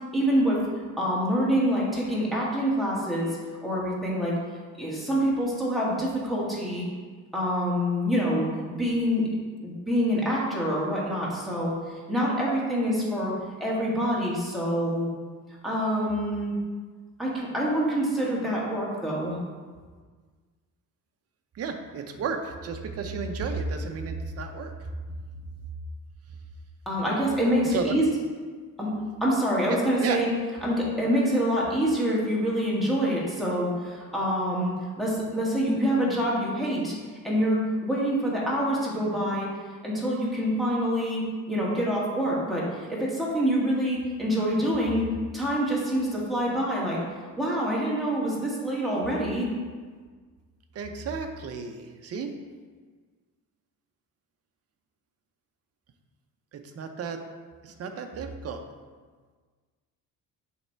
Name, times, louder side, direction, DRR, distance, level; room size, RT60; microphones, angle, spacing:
voice 1, 0.1-0.6 1.0-4.4 4.8-6.8 7.3-9.3 9.6-13.3 13.6-15.1 15.6-16.5 17.2-19.4 26.8-28.1 28.8-28.9 29.2-30.3 30.6-36.9 37.2-39.5 39.8-41.2 41.5-45.1 45.3-47.0 47.4-49.5, equal, ahead, -6 dB, 1.7 m, -26 dB
voice 2, 21.5-24.7 27.7-27.9 30.0-30.2 50.7-52.3 56.5-57.2 57.6-58.6, right 5 dB, 40° right, 6 dB, 0.7 m, -33 dB
7.1 x 3.3 x 4.5 m, 1.5 s
cardioid pair, 120°, 36 cm